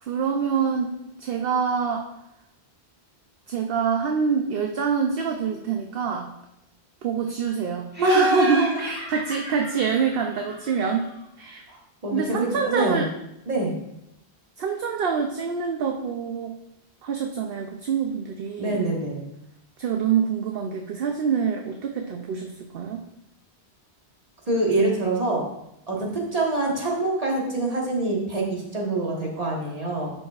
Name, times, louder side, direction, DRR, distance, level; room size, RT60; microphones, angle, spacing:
voice 1, 0.0-2.1 3.5-6.3 7.0-11.1 11.4-11.6 12.1-13.1 14.6-16.6 17.0-18.8 19.8-23.0, right 6 dB, 65° right, 3 dB, 0.8 m, -26 dB
Laughter, 7.9-11.3, right 1 dB, 10° right, 1.4 m, -37 dB
voice 2, 8.0-8.9 11.7-11.8 12.0-13.0 13.5-13.8 18.6-19.2 24.5-25.5 25.9-30.1, right 2 dB, 35° right, -2 dB, 1.6 m, -25 dB
12.0 x 5.2 x 2.4 m, 0.84 s
omnidirectional pair, 1.1 m